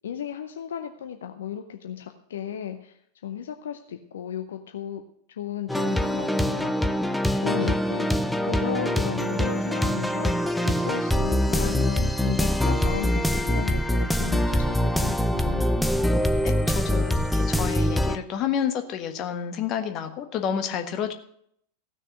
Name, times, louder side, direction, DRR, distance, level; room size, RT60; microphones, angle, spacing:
voice 1, 0.0-5.0 5.3-15.9, left 9 dB, 60° left, 6 dB, 0.7 m, -35 dB
sound 1, 5.7-18.2, equal, 5° left, 0.6 m, -24 dB
voice 2, 16.4-21.1, left 8 dB, 35° left, 7 dB, 1.4 m, -30 dB
15.5 x 6.4 x 6.5 m, 0.70 s
figure-of-eight pair, 90°, 0 cm